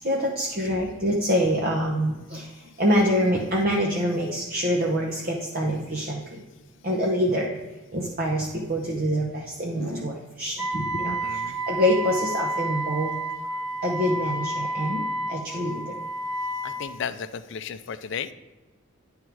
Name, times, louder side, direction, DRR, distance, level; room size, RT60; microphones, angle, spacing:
voice 1, 0.0-6.4 6.8-7.6 7.9-13.1 13.8-16.0, equal, 45° right, -2 dB, 0.8 m, -26 dB
Wind instrument woodwind instrument, 10.6-16.8, right 1 dB, ahead, 1.1 m, -30 dB
voice 2, 11.2-11.6 16.6-18.3, left 7 dB, 55° left, 13 dB, 0.4 m, -34 dB
10.5 x 3.6 x 4.6 m, 1.2 s
head